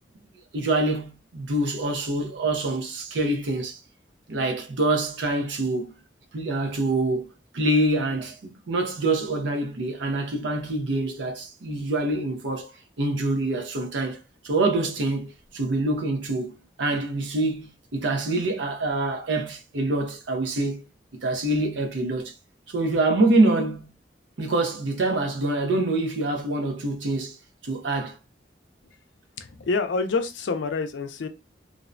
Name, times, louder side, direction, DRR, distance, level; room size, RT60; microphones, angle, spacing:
voice 1, 0.5-3.8 4.3-5.9 6.3-14.2 14.4-20.8 21.2-22.3 22.7-23.9 24.4-27.4 27.6-28.2, right 2 dB, 75° right, 0.6 m, -25 dB
voice 2, 29.4-31.3, left 4 dB, 80° left, 0.4 m, -27 dB
2.6 x 2.1 x 2.5 m
head